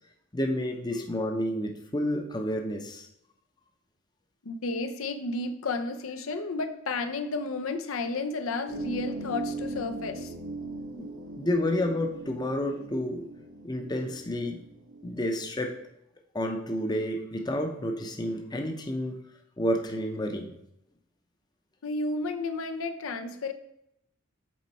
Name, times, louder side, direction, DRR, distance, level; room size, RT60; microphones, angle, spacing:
voice 1, 0.3-3.1 11.0-11.1 11.4-13.2 13.6-14.6 15.0-15.7 16.3-19.2 19.6-20.6, left 1 dB, 20° left, 4 dB, 0.6 m, -30 dB
voice 2, 4.4-10.3 21.8-23.5, left 3 dB, 80° left, 7 dB, 0.6 m, -32 dB
sound 1, 8.7-15.7, right 2 dB, 75° right, 1.3 m, -40 dB
7.5 x 4.4 x 4.2 m, 0.79 s
head